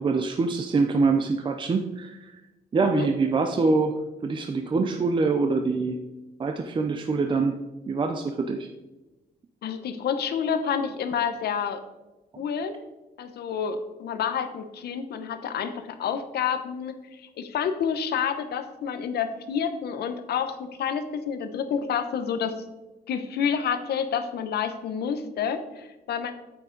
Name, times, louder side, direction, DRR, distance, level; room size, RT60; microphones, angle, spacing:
voice 1, 0.0-2.4 2.7-6.0 6.4-7.6 7.9-8.7 12.3-12.4, right 4 dB, 30° right, 5 dB, 0.6 m, -25 dB
voice 2, 9.6-11.8 12.4-12.8 13.2-22.5 23.1-26.3, left 7 dB, 90° left, 9 dB, 0.9 m, -29 dB
9.0 x 8.6 x 3.9 m, 1.1 s
wide cardioid pair, 150°, 16 cm